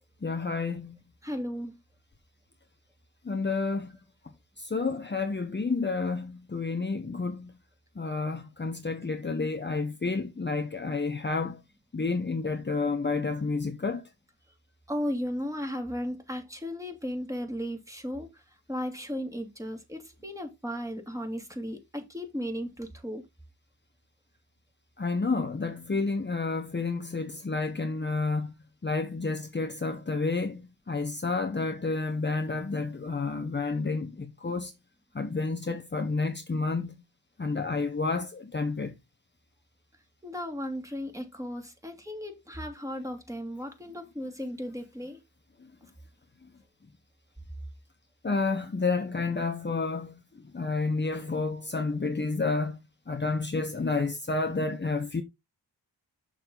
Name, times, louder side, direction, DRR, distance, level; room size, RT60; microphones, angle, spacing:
voice 1, 0.2-0.9 3.3-3.9 4.7-7.4 8.0-11.5 11.9-14.0 25.0-28.5 28.8-30.6 30.9-34.1 34.4-34.7 35.2-36.9 37.4-38.3 38.5-38.9 48.2-50.1 50.5-52.7 53.1-55.2, left 3 dB, 25° left, 1.2 m, -30 dB
voice 2, 1.2-1.8 14.9-18.4 18.7-23.2 40.2-45.2, equal, 10° right, 2.8 m, -35 dB
6.8 x 6.5 x 4.0 m
cardioid pair, 70°, 39 cm